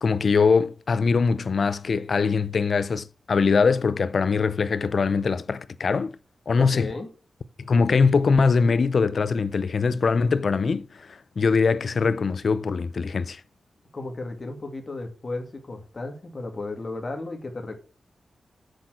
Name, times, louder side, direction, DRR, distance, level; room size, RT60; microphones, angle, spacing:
voice 1, 0.0-6.2 6.5-6.9 7.6-13.4, left 5 dB, 55° left, 0.6 m, -22 dB
voice 2, 6.6-7.1 13.9-17.8, left 2 dB, 35° left, 2.3 m, -34 dB
8.1 x 6.2 x 6.3 m
wide cardioid pair, 120°, 0 cm